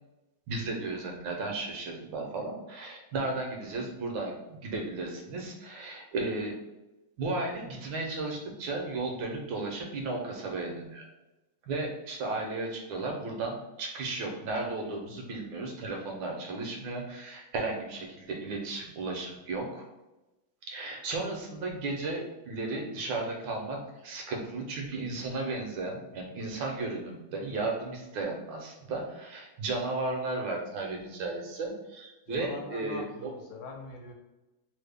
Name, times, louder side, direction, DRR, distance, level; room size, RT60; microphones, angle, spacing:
voice 1, 0.5-6.6 7.2-11.1 11.7-19.8 20.6-33.3, right 3 dB, 80° right, 1 dB, 1.4 m, -34 dB
voice 2, 32.3-34.1, left 3 dB, 85° left, 2 dB, 1.4 m, -42 dB
3.5 x 2.0 x 3.3 m, 1.0 s
omnidirectional pair, 2.1 m